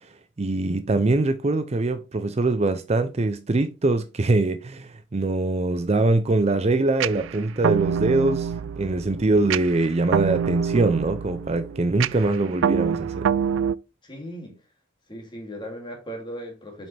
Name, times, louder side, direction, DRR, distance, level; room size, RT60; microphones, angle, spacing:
voice 1, 0.4-8.5 8.8-13.3, right 2 dB, 35° right, 0.5 m, -23 dB
sound 1, 7.0-13.8, right 7 dB, 90° right, 0.3 m, -26 dB
voice 2, 14.0-14.6 15.1-16.9, equal, 25° left, 2.5 m, -37 dB
7.4 x 5.4 x 3.3 m
head